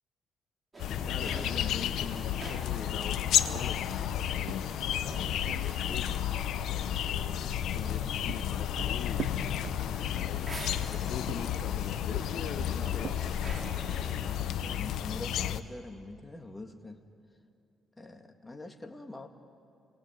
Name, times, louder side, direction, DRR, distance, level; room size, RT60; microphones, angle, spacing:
sound 1, 0.7-14.3, right 2 dB, 25° right, 3.9 m, -46 dB
sound 2, 0.8-15.6, left 11 dB, 80° left, 0.8 m, -32 dB
voice 1, 1.0-3.9 4.4-6.9 7.7-10.6 10.9-13.2, left 7 dB, 65° left, 8 dB, 1.1 m, -43 dB
sound 3, 3.5-6.1 7.8-10.2 11.1-13.7, right 10 dB, 75° right, 0.7 m, -44 dB
voice 2, 14.2-17.0 18.0-19.3, left 2 dB, 15° left, 4 dB, 2.2 m, -45 dB
29.0 x 21.0 x 9.2 m, 2.5 s
cardioid pair, 90°, 0 cm